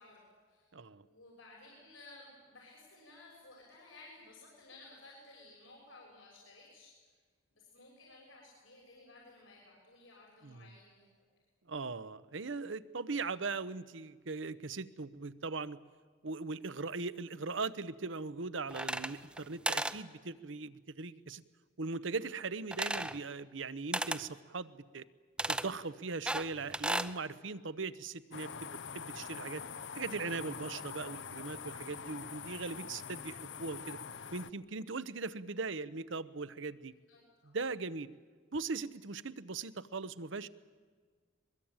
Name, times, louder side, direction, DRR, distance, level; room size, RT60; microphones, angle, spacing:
voice 1, 0.0-0.7 1.0-6.9 7.5-11.2 37.1-37.6, left 2 dB, 85° left, -2 dB, 6.5 m, -56 dB
voice 2, 0.7-1.1 10.4-10.7 11.7-15.8 16.2-21.4 21.8-25.0 25.5-29.6 29.9-34.0 34.3-36.9 37.5-38.1 38.5-40.5, right 4 dB, 70° right, 15 dB, 0.9 m, -39 dB
sound 1, 18.7-19.4 19.6-20.0 22.7-23.2 23.9-24.2 25.4-25.7 26.3-27.1, right 1 dB, 5° right, 0.6 m, -34 dB
sound 2, 28.3-34.5, left 6 dB, 65° left, 0.7 m, -45 dB
23.0 x 22.5 x 8.9 m, 1.5 s
head